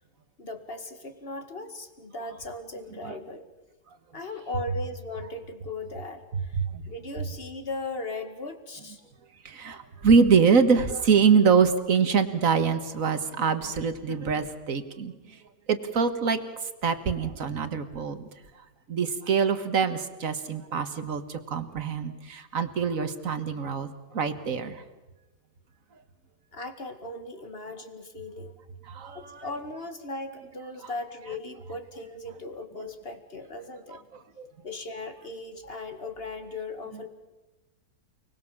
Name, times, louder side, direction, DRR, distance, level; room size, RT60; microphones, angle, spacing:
voice 1, 0.4-3.5 4.1-9.0 26.5-28.6 29.1-34.0 34.6-37.1, left 2 dB, 35° left, 7 dB, 2.2 m, -38 dB
voice 2, 9.5-15.1 15.7-16.4 16.8-18.2 18.9-24.8 28.9-29.4 34.4-34.5, right 5 dB, 50° right, 10 dB, 1.9 m, -24 dB
29.5 x 20.5 x 7.3 m, 1.1 s
omnidirectional pair, 1.9 m